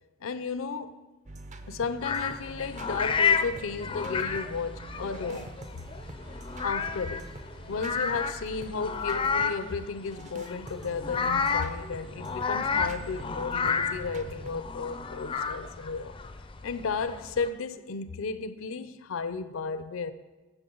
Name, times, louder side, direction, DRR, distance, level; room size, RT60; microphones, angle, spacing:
voice 1, 0.2-1.0 1.7-5.5 6.6-7.3 7.7-16.1 16.6-20.1, left 4 dB, 75° left, 0.5 m, -34 dB
sound 1, 1.3-9.5 10.0-14.6, right 1 dB, 35° right, 0.5 m, -44 dB
sound 2, 2.0-17.5, left 5 dB, 25° left, 0.4 m, -31 dB
12.5 x 7.8 x 3.9 m
head